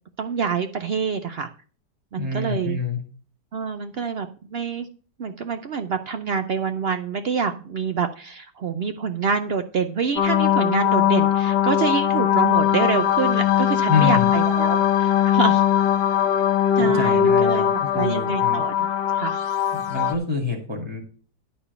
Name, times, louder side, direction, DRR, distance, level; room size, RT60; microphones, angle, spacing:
voice 1, 0.2-1.5 2.1-2.8 3.5-4.9 5.2-15.6 16.8-18.7 19.2-19.4, right 5 dB, 80° right, 8 dB, 0.5 m, -26 dB
voice 2, 2.2-3.0 13.9-14.3 16.8-18.6 19.7-21.0, left 4 dB, 5° right, 1 dB, 2.0 m, -26 dB
sound 1, 10.2-20.1, left 10 dB, 85° left, 1.4 m, -20 dB
11.0 x 4.4 x 6.7 m, 0.39 s
omnidirectional pair, 1.8 m